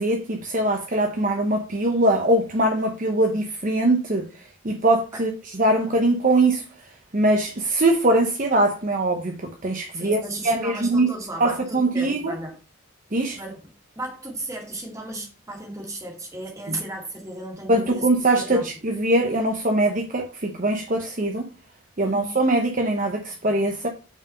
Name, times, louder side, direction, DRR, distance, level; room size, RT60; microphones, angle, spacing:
voice 1, 0.0-4.3 4.6-5.3 5.6-6.6 7.1-10.2 10.4-11.1 11.4-12.3 13.1-13.4 16.7-16.8 17.7-21.4 22.0-23.9, right 1 dB, 40° right, 0.8 m, -22 dB
voice 2, 9.9-12.6 13.3-13.7 14.0-18.1 18.3-18.7 22.0-22.3, right 2 dB, 15° right, 2.1 m, -35 dB
5.9 x 4.7 x 5.2 m
head